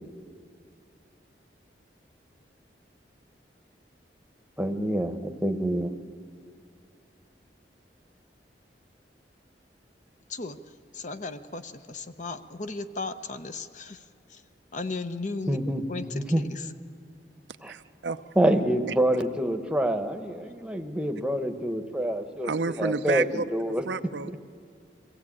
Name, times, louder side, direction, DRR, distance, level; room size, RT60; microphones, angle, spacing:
voice 1, 4.6-5.9 15.5-15.8 16.1-16.4 17.6-17.7 18.4-22.5 22.8-23.8, right 1 dB, 5° right, 6 dB, 1.0 m, -26 dB
voice 2, 10.9-14.4 14.7-15.6 15.9-16.7, left 3 dB, 45° left, 10 dB, 0.8 m, -36 dB
voice 3, 17.7-18.2 22.4-23.5 23.8-24.4, right 4 dB, 90° right, 11 dB, 0.6 m, -30 dB
22.5 x 16.0 x 8.6 m, 2.3 s
head